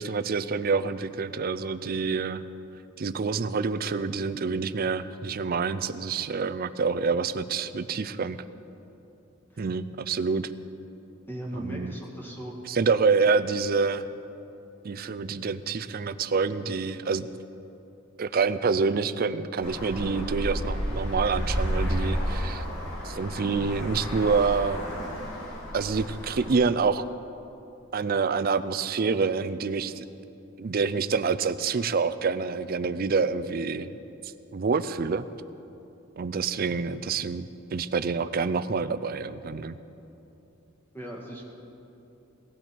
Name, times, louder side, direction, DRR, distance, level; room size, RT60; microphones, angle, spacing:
voice 1, 0.0-2.4 3.0-8.4 9.6-10.5 11.5-11.9 12.7-14.1 14.8-17.3 18.2-22.6 23.0-24.8 25.7-27.0 27.9-30.0 30.6-33.9 34.5-35.2 36.2-39.7, right 5 dB, 45° right, 12 dB, 0.5 m, -27 dB
voice 2, 11.3-12.5 40.9-41.5, right 1 dB, 10° left, -2 dB, 2.0 m, -37 dB
Traffic noise roadway noise, 19.6-26.5, equal, 85° left, 4.0 m, -31 dB
18.0 x 13.5 x 4.6 m, 2.9 s
head